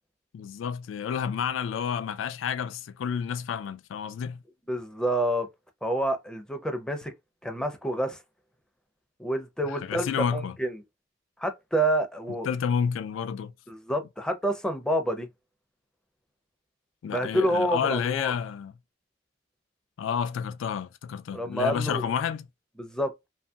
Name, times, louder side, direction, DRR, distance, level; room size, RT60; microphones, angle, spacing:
voice 1, 0.3-4.4 9.8-10.6 12.4-13.5 17.0-18.7 20.0-22.5, left 7 dB, 80° left, 0.3 m, -30 dB
voice 2, 4.7-5.5 5.8-7.1 7.4-8.2 9.2-10.8 11.4-12.5 13.7-15.3 17.1-18.3 21.3-22.1 22.8-23.1, right 1 dB, 5° left, 0.4 m, -28 dB
2.9 x 2.6 x 2.3 m
head